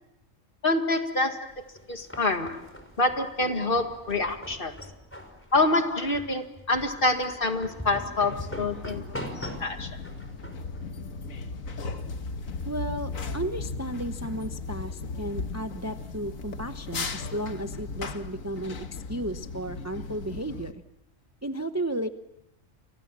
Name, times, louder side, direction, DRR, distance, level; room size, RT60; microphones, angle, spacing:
voice 1, 0.6-1.5 1.9-2.6 3.0-4.8 5.5-9.9, left 2 dB, 45° left, 6 dB, 2.2 m, -26 dB
sound 1, 1.5-11.9, left 1 dB, 10° left, 4.8 m, -42 dB
sound 2, 8.3-20.7, left 4 dB, 85° left, 1.9 m, -36 dB
voice 2, 12.6-20.8 21.4-22.1, right 1 dB, 15° right, 8 dB, 0.8 m, -34 dB
30.0 x 25.0 x 7.4 m, 0.93 s
omnidirectional pair, 1.4 m